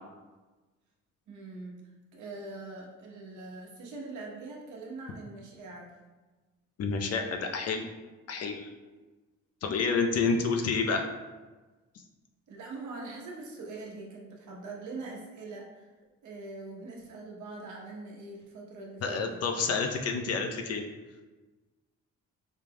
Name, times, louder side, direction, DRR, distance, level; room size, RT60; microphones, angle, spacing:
voice 1, 1.3-1.8 2.1-5.9 9.6-9.9 12.5-15.9 16.2-19.4, right 3 dB, 70° right, -1 dB, 1.0 m, -43 dB
voice 2, 6.8-7.9 8.3-8.7 9.6-11.1 19.0-20.8, left 4 dB, 55° left, 4 dB, 0.5 m, -29 dB
4.9 x 2.2 x 3.4 m, 1.2 s
cardioid pair, 90°, 30 cm